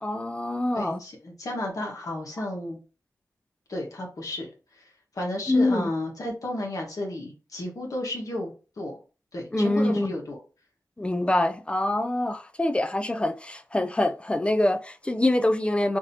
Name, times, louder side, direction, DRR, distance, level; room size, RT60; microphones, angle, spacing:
voice 1, 0.0-1.0 5.5-5.9 9.5-10.1 11.0-16.0, left 1 dB, 15° left, 0.3 m, -25 dB
voice 2, 0.8-2.8 3.7-4.8 5.1-9.0 9.3-10.4, left 1 dB, 60° left, 1.3 m, -33 dB
5.2 x 2.8 x 2.7 m
wide cardioid pair, 105°, 7 cm